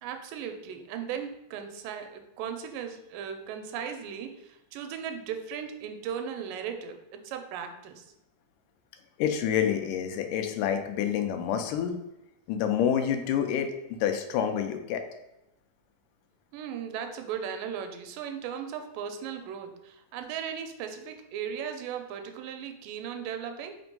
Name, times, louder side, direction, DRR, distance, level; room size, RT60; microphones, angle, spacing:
voice 1, 0.0-8.0 16.5-23.8, right 8 dB, 85° right, 6 dB, 2.3 m, -37 dB
voice 2, 9.2-11.9 12.5-15.0, left 9 dB, 80° left, 6 dB, 2.2 m, -28 dB
5.2 x 3.4 x 5.2 m, 0.88 s
omnidirectional pair, 3.8 m